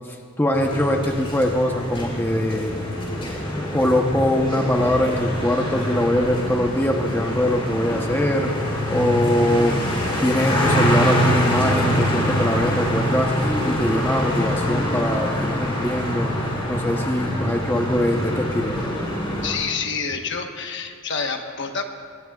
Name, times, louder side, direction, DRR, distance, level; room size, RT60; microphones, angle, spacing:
voice 1, 0.1-2.7 3.5-8.5 8.9-9.8 10.2-16.3 16.7-18.8, left 1 dB, 10° left, 2 dB, 0.9 m, -22 dB
sound 1, 0.5-19.5, equal, 25° left, 3.3 m, -25 dB
voice 2, 19.4-21.8, left 5 dB, 60° left, 4 dB, 1.2 m, -28 dB
22.0 x 19.5 x 2.4 m, 2.3 s
head